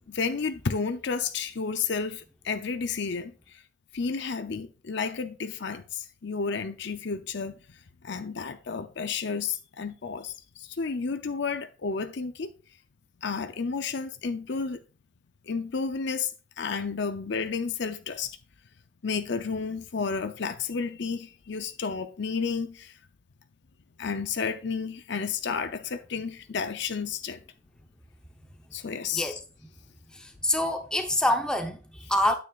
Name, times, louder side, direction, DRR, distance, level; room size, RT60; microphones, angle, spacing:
voice 1, 0.1-3.6 3.9-7.8 8.0-12.5 13.2-14.8 15.5-16.3 16.6-18.4 19.0-22.9 24.0-27.4 28.7-29.4, left 5 dB, 55° left, 0.6 m, -31 dB
voice 2, 30.1-32.3, left 1 dB, 5° left, 0.8 m, -26 dB
9.2 x 9.1 x 2.4 m
head